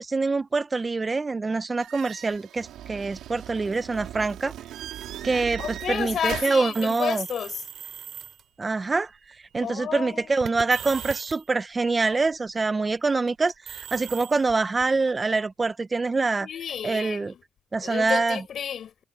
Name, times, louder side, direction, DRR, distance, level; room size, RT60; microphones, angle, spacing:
voice 1, 0.0-4.5 5.2-7.3 8.6-9.1 9.5-16.5 16.8-17.3 17.7-18.4, right 3 dB, 25° right, 0.9 m, -25 dB
sound 1, 1.8-6.7, right 12 dB, 80° right, 4.3 m, -38 dB
voice 2, 5.6-7.7 9.6-10.5 16.4-17.4 17.8-18.9, left 8 dB, 60° left, 5.2 m, -31 dB
sound 2, 6.7-8.4 9.3-9.6 10.4-11.5 13.3-15.4, right 9 dB, 65° right, 3.1 m, -39 dB
cardioid pair, 90°, 0 cm